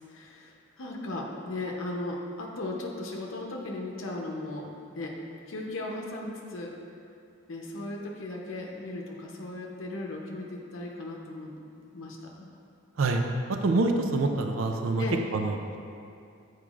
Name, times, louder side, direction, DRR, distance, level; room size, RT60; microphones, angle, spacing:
voice 1, 0.0-4.7 4.9-5.2 5.5-6.7 7.5-11.6 11.9-12.5 15.0-15.2, left 2 dB, 80° left, -1 dB, 0.7 m, -37 dB
voice 2, 13.6-15.0 15.3-15.6, right 3 dB, 85° right, 4 dB, 0.4 m, -25 dB
8.8 x 4.6 x 2.4 m, 2.5 s
head